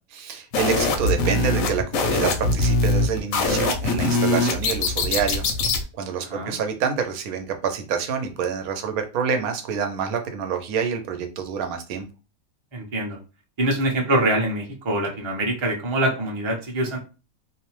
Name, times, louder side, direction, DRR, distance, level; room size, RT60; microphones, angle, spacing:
voice 1, 0.1-5.4 6.0-12.1, right 7 dB, 85° right, 5 dB, 1.0 m, -27 dB
sound 1, 0.5-5.8, left 3 dB, 75° left, 1.0 m, -22 dB
voice 2, 12.7-13.2 13.6-17.0, right 1 dB, 30° right, 0 dB, 0.5 m, -24 dB
2.7 x 2.0 x 2.9 m, 0.32 s
omnidirectional pair, 1.5 m